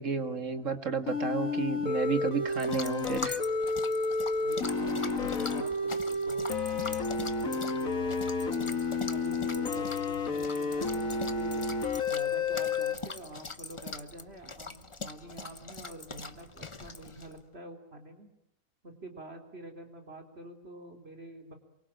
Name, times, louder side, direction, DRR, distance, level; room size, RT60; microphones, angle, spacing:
voice 1, 0.0-3.4 5.2-5.3, right 5 dB, 65° right, 9 dB, 2.4 m, -32 dB
sound 1, 1.1-13.0, left 3 dB, 80° left, 2.3 m, -31 dB
sound 2, 2.5-17.4, left 3 dB, 25° left, 1.1 m, -42 dB
voice 2, 4.4-6.5 6.7-8.8 9.1-11.6 12.0-18.3 18.8-21.5, right 1 dB, 50° right, 4 dB, 4.2 m, -47 dB
27.5 x 24.0 x 8.9 m, 0.81 s
omnidirectional pair, 1.4 m